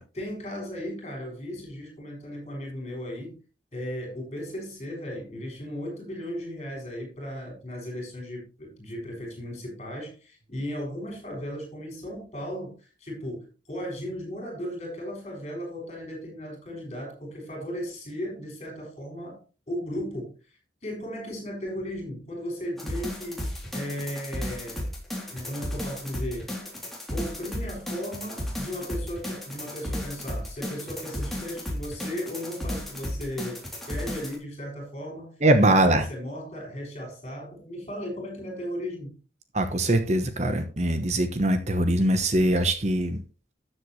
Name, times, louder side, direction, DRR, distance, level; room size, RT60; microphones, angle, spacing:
voice 1, 0.1-3.3 3.7-19.4 19.7-20.3 20.8-24.9 25.3-26.5 27.1-33.6 33.9-39.2, equal, 35° left, 6.6 m, -36 dB
sound 1, 22.8-34.4, left 1 dB, ahead, 3.2 m, -34 dB
voice 2, 35.4-36.0 39.5-43.2, right 1 dB, 40° right, 1.1 m, -22 dB
13.0 x 7.8 x 3.2 m
head